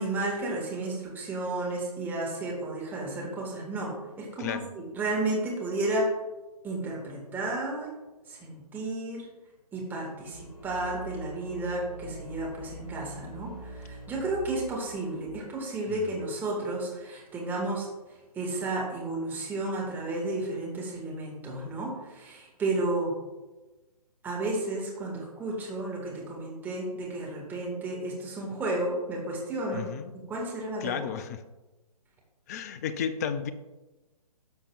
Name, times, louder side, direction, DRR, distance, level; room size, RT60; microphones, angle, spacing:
voice 1, 0.0-6.1 6.6-7.9 8.3-9.3 9.7-17.9 18.3-23.2 24.2-29.9 30.3-31.0, right 2 dB, 10° right, -2 dB, 1.9 m, -32 dB
voice 2, 4.4-4.7 15.9-16.1 29.7-30.1 30.8-31.4 32.5-33.5, left 7 dB, 25° left, 12 dB, 0.5 m, -33 dB
sound 1, 10.2-15.4, right 2 dB, 80° left, 2.0 m, -43 dB
12.5 x 6.9 x 2.5 m, 1.1 s
figure-of-eight pair, 135°, 20 cm